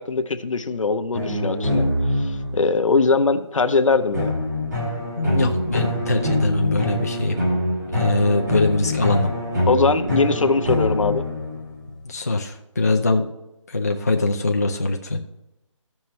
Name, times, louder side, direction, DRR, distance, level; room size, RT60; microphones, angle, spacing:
voice 1, 0.0-1.9 2.2-4.4 9.7-11.2, left 4 dB, 70° left, 7 dB, 0.8 m, -21 dB
sound 1, 1.1-2.8 4.1-11.9, left 1 dB, 35° right, 2.6 m, -24 dB
voice 2, 5.2-7.4 7.9-9.3 12.1-13.3 13.7-15.2, left 2 dB, 30° left, 1 dB, 0.4 m, -22 dB
14.5 x 5.7 x 3.2 m, 0.93 s
hypercardioid pair, 175°, 17 cm